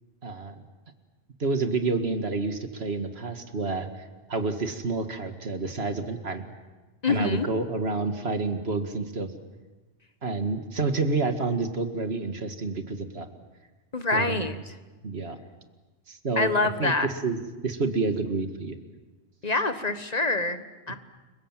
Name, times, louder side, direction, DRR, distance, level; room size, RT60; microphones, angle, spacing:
voice 1, 0.2-0.6 1.4-3.9 4.3-6.4 7.1-9.3 10.2-13.3 14.1-14.6 15.0-15.4 16.1-16.5 16.8-18.8, right 3 dB, 75° right, 7 dB, 2.3 m, -29 dB
voice 2, 7.0-7.5 13.9-14.5 16.4-17.1 19.4-21.0, left 3 dB, 40° left, 9 dB, 1.4 m, -26 dB
30.0 x 23.5 x 7.5 m, 1.2 s
omnidirectional pair, 1.1 m